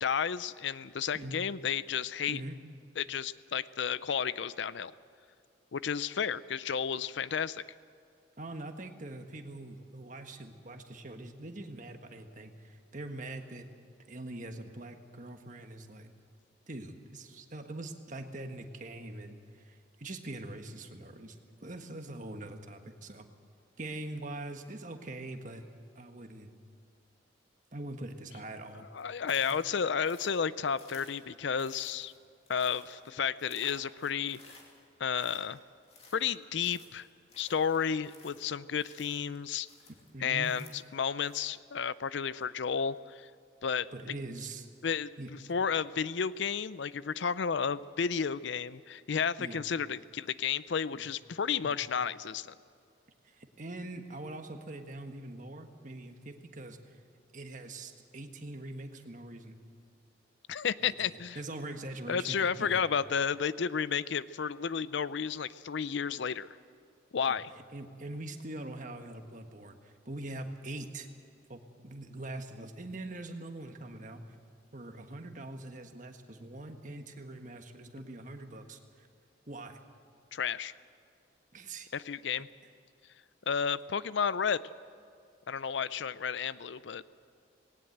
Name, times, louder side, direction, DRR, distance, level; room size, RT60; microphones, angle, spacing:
voice 1, 0.0-2.4 3.0-4.9 5.7-7.6 28.9-32.1 32.5-34.4 35.0-35.6 36.1-37.1 37.4-39.7 40.2-43.3 43.6-44.2 44.8-45.1 45.5-52.6 60.5-61.4 62.1-66.5 67.1-67.5 80.3-80.7 81.9-82.5 83.5-84.6 85.5-87.1, left 7 dB, 65° left, 17 dB, 0.5 m, -32 dB
voice 2, 8.4-13.7 14.1-16.1 16.7-21.4 21.6-23.3 23.8-25.6 25.9-26.5 27.7-28.9 29.5-29.6 40.1-40.6 43.9-44.7 45.2-45.3 49.4-49.6 50.9-51.0 51.6-51.8 53.2-57.0 57.3-59.5 60.8-62.8 67.3-67.4 67.7-71.1 71.5-74.2 74.7-79.1 79.5-79.8 81.5-81.9, right 2 dB, 40° right, 6 dB, 1.4 m, -43 dB
sound 1, 29.0-41.6, left 3 dB, 30° left, 2.7 m, -57 dB
19.0 x 18.0 x 7.9 m, 2.3 s
head